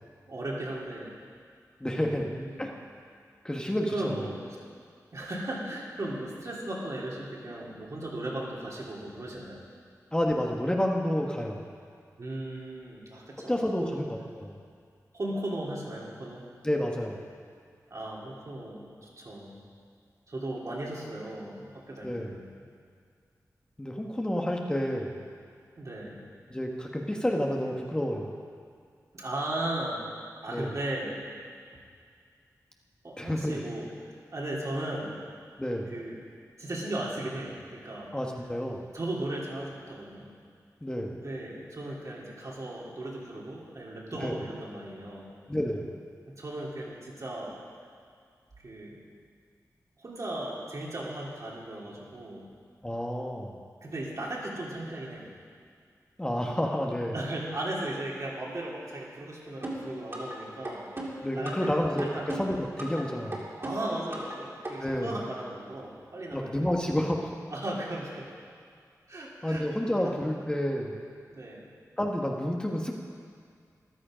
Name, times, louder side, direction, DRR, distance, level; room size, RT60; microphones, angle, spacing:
voice 1, 0.3-1.1 1.8-2.7 3.9-4.3 5.1-9.6 12.2-14.0 15.1-16.4 17.9-19.5 20.3-22.6 25.8-26.2 29.1-30.0 30.4-31.1 33.0-33.9 34.3-35.1 35.9-36.2 36.6-38.1 38.9-40.3 41.1-45.3 46.3-47.6 48.6-49.0 50.0-52.5 53.8-55.3 57.1-60.8 61.3-62.2 63.6-66.5 67.5-68.3 69.1-69.6 70.0-70.1 71.3-71.7, right 1 dB, 55° right, -4 dB, 3.0 m, -36 dB
voice 2, 1.8-2.3 2.6-2.7 3.4-4.2 10.1-11.7 13.4-14.6 16.6-17.2 22.0-22.4 23.8-25.2 26.5-28.3 30.5-30.8 33.2-33.6 35.6-35.9 38.1-38.9 40.8-41.2 44.2-44.4 45.5-46.0 52.8-53.6 56.2-57.2 61.2-63.5 64.8-65.2 66.3-67.3 69.4-71.0 72.0-73.0, equal, 15° left, 0 dB, 1.3 m, -30 dB
sound 1, 59.6-60.4 60.6-61.7 62.0-63.0 63.3-64.4 64.6-64.7, right 1 dB, 40° right, 2.6 m, -36 dB
14.0 x 12.0 x 5.1 m, 2.2 s
wide cardioid pair, 75°, 7 cm